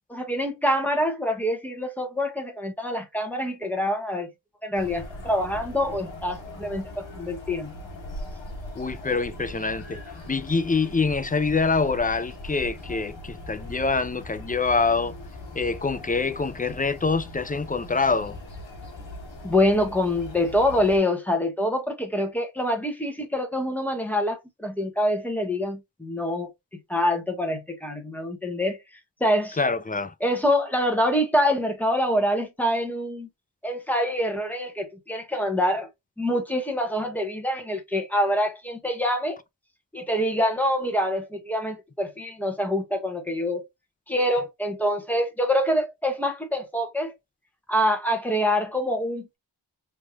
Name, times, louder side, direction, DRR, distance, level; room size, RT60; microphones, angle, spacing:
voice 1, 0.1-4.3 4.6-7.7 19.4-26.5 26.9-28.8 29.2-29.6 30.2-33.3 33.6-35.9 36.2-39.4 39.9-43.6 44.1-47.1 47.7-49.4, left 1 dB, 5° left, 1.2 m, -25 dB
sound 1, 4.7-21.0, left 1 dB, 85° left, 1.4 m, -40 dB
voice 2, 8.8-10.0 10.3-15.1 15.5-18.4 29.6-30.1, left 4 dB, 20° left, 0.3 m, -25 dB
3.5 x 3.1 x 2.3 m
wide cardioid pair, 90°, 44 cm